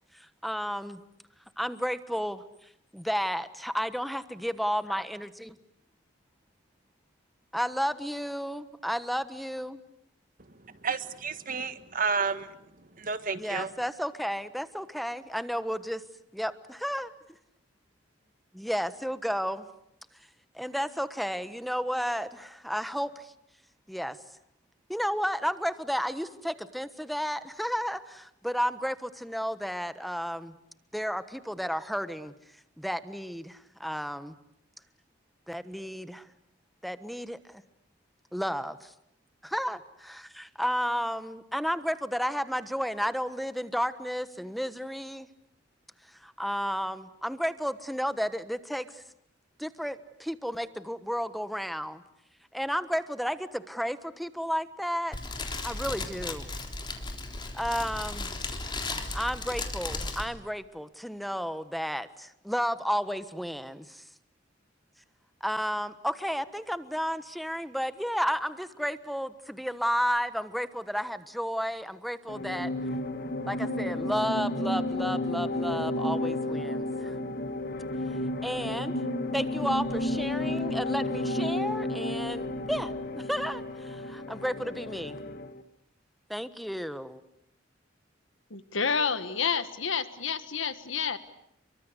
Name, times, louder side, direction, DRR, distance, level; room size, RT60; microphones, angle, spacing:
voice 1, 0.4-1.0 1.6-2.4 2.9-5.6 7.5-9.8 13.4-16.0 16.3-17.1 18.6-19.6 20.5-23.3 23.9-24.2 24.9-30.6 30.9-32.3 32.8-34.4 35.5-36.3 36.8-37.6 38.3-38.9 39.4-45.3 46.2-49.0 49.6-52.0 52.5-55.2 55.6-56.5 57.5-58.3 59.1-64.0 65.4-72.7 73.4-77.2 78.4-78.9 79.3-85.2 86.3-87.2, equal, ahead, 12 dB, 1.3 m, -32 dB
voice 2, 10.5-13.7, right 5 dB, 45° right, 11 dB, 1.6 m, -32 dB
Fire, 55.1-60.2, left 2 dB, 25° left, 3.6 m, -35 dB
sound 1, 72.3-85.6, left 1 dB, 55° left, 1.6 m, -32 dB
voice 3, 88.5-91.2, left 6 dB, 85° left, 12 dB, 1.6 m, -29 dB
29.5 x 24.0 x 8.3 m, 0.79 s
head